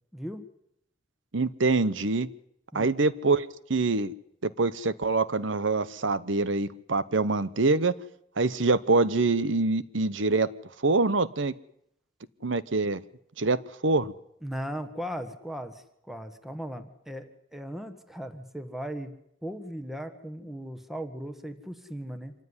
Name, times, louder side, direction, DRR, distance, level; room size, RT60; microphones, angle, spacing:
voice 1, 0.1-0.4 2.7-3.0 14.4-19.1 19.4-22.3, equal, ahead, 8 dB, 1.4 m, -37 dB
voice 2, 1.3-2.3 2.7-4.1 4.4-7.9 8.4-10.5 10.8-11.5 12.4-13.0 13.4-14.1, right 3 dB, 65° right, 16 dB, 0.9 m, -25 dB
26.0 x 15.5 x 9.7 m, 0.77 s
head